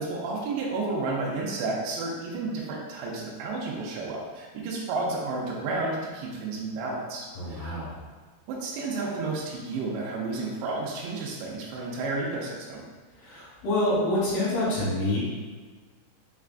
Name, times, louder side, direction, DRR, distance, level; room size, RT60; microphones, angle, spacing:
voice 1, 0.0-7.8 8.5-12.9, right 3 dB, 85° right, -3 dB, 2.8 m, -31 dB
voice 2, 7.3-8.0 13.2-15.2, left 1 dB, 65° left, -11 dB, 2.8 m, -27 dB
6.4 x 2.4 x 2.3 m, 1.5 s
omnidirectional pair, 5.0 m